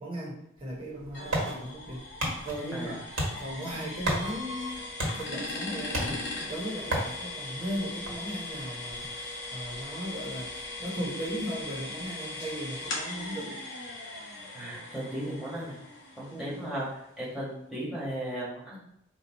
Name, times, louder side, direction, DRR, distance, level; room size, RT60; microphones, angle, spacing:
voice 1, 0.0-2.0 2.4-3.0 3.4-4.8 5.1-9.3 9.5-13.6 16.3-16.8, equal, 25° right, -5 dB, 1.1 m, -37 dB
sound 1, 0.6-12.1, right 1 dB, 85° right, 1.5 m, -37 dB
sound 2, 1.1-16.8, left 2 dB, 60° left, 1.0 m, -39 dB
voice 2, 14.5-15.8 16.1-18.8, right 1 dB, ahead, -8 dB, 1.4 m, -36 dB
4.3 x 2.5 x 4.2 m, 0.79 s
head